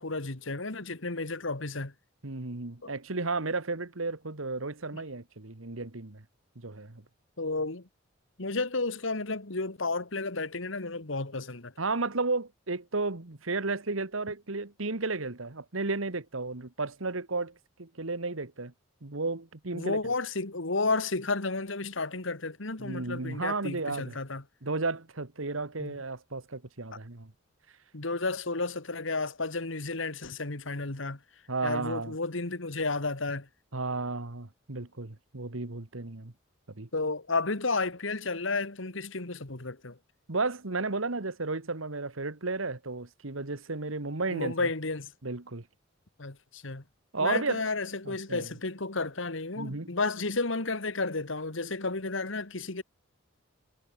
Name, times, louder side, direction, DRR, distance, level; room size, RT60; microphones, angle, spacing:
voice 1, 0.0-1.9 2.8-2.9 7.4-7.8 8.4-11.7 19.7-24.4 25.8-25.9 27.9-31.2 31.6-33.5 36.9-40.0 44.3-45.1 46.2-46.8 47.2-52.8, left 3 dB, 70° left, 1.9 m, -32 dB
voice 2, 2.2-6.2 6.6-7.0 11.8-18.7 19.0-20.0 22.8-24.2 24.6-27.3 31.5-32.1 33.7-36.3 36.8-36.9 40.3-44.7 45.2-45.6 47.1-47.7 48.0-48.5 49.6-49.9, right 3 dB, 80° right, 1.7 m, -33 dB
head